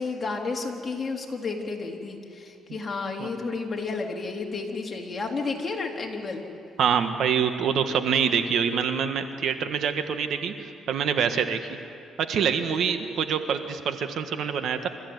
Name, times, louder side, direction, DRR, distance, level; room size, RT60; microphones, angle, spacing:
voice 1, 0.0-6.4, left 4 dB, 30° left, 0 dB, 3.5 m, -31 dB
voice 2, 6.8-10.5 10.9-11.7 12.2-14.9, right 7 dB, 70° right, 8 dB, 1.5 m, -25 dB
26.0 x 15.0 x 9.6 m, 2.6 s
cardioid pair, 90°, 0 cm